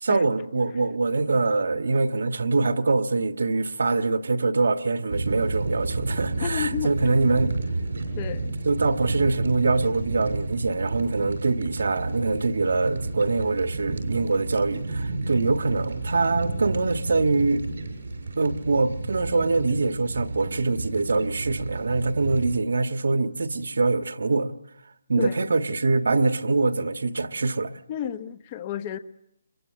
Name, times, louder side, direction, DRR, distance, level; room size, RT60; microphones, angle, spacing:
voice 1, 0.0-7.5 8.7-17.6 18.4-24.5 25.1-27.7, right 3 dB, 80° right, 1.5 m, -24 dB
sound 1, 5.1-22.6, right 3 dB, 60° right, 6.7 m, -31 dB
voice 2, 6.4-6.9 8.2-8.6 25.2-25.4 27.9-29.0, left 9 dB, 25° left, 1.0 m, -31 dB
27.5 x 22.5 x 7.5 m
hypercardioid pair, 170°, 0 cm